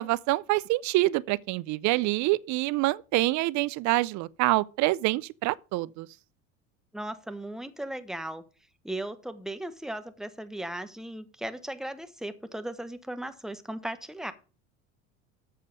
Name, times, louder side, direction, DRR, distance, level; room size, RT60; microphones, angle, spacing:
voice 1, 0.0-6.1, right 19 dB, 55° right, 0.5 m, -26 dB
voice 2, 6.9-8.4 8.8-14.3, right 1 dB, ahead, 1.1 m, -37 dB
7.5 x 6.6 x 5.5 m
supercardioid pair, 85°, 34 cm